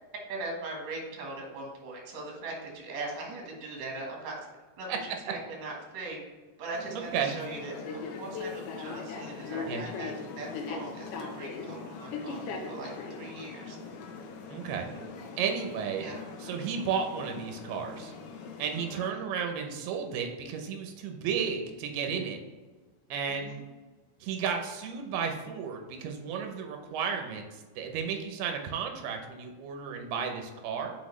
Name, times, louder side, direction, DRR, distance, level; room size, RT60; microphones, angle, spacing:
voice 1, 0.3-4.4 4.8-6.2 6.6-13.8 14.9-15.0 16.0-16.2 18.9-19.3 23.3-23.7, right 2 dB, 55° right, -1 dB, 2.4 m, -40 dB
sound 1, 6.7-19.1, left 4 dB, 75° left, 2.0 m, -40 dB
voice 2, 14.5-14.9 15.4-16.1 16.4-18.1 18.6-22.4 23.1-23.5 24.2-30.9, right 6 dB, 90° right, 4 dB, 2.8 m, -33 dB
6.2 x 5.5 x 3.2 m, 1.3 s
omnidirectional pair, 4.4 m